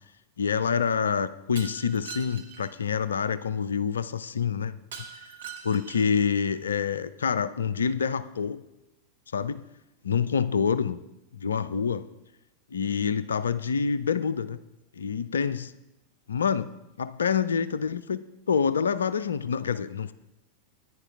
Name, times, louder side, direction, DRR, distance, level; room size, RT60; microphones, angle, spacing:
voice 1, 0.4-4.7 5.1-5.3 5.6-8.6 9.3-9.6 10.0-11.0 11.3-12.0 12.7-14.6 15.0-15.7 16.3-16.7 17.0-20.1, left 6 dB, 70° left, 15 dB, 0.3 m, -27 dB
Shatter, 1.6-2.7 4.9-6.2, right 7 dB, 65° right, 1.1 m, -42 dB
14.0 x 9.8 x 2.4 m, 0.94 s
figure-of-eight pair, 90°, 0 cm